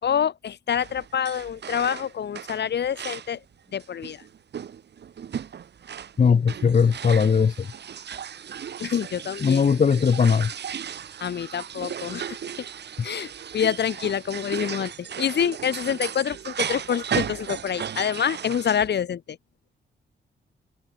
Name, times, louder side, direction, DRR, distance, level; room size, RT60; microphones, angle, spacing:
voice 1, 0.0-3.4 3.7-4.2 8.8-9.6 11.2-12.4 13.0-19.4, left 8 dB, 65° left, 5.1 m, -27 dB
sound 1, 0.8-3.4 3.8-18.9, right 8 dB, 65° right, 5.5 m, -35 dB
voice 2, 6.2-7.5 9.4-10.5, left 6 dB, 40° left, 2.1 m, -19 dB
wide cardioid pair, 135°, 19 cm